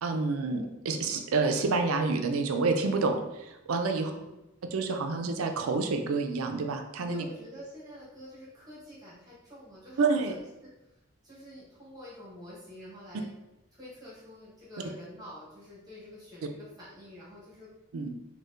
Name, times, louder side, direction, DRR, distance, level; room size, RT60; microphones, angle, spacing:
voice 1, 0.0-4.1 4.7-7.2 10.0-10.3 17.9-18.1, right 4 dB, 85° right, 5 dB, 0.4 m, -28 dB
voice 2, 3.9-4.4 7.1-10.7 11.2-13.3 13.7-17.7, left 1 dB, 20° right, -8 dB, 1.0 m, -47 dB
4.2 x 2.2 x 2.5 m, 0.96 s
head